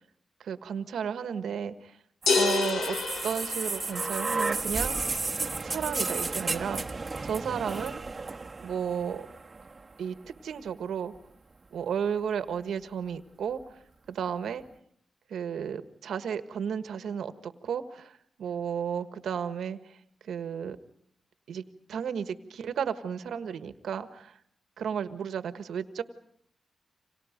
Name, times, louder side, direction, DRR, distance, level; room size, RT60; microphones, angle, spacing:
voice 1, 0.4-2.0 2.3-3.0 3.2-5.2 5.6-7.0 7.2-8.0 8.6-9.3 10.0-10.2 10.4-11.1 11.7-13.6 14.1-14.6 15.3-20.0 20.2-20.8 21.5-21.6 21.9-24.4 24.8-26.0, right 7 dB, 85° right, 11 dB, 1.4 m, -33 dB
sound 1, 2.2-10.1 11.2-11.3, right 3 dB, 35° right, 1.3 m, -33 dB
sound 2, 2.3-4.3, left 4 dB, 85° left, 2.8 m, -28 dB
30.0 x 26.5 x 5.2 m, 0.66 s
cardioid pair, 70°, 0 cm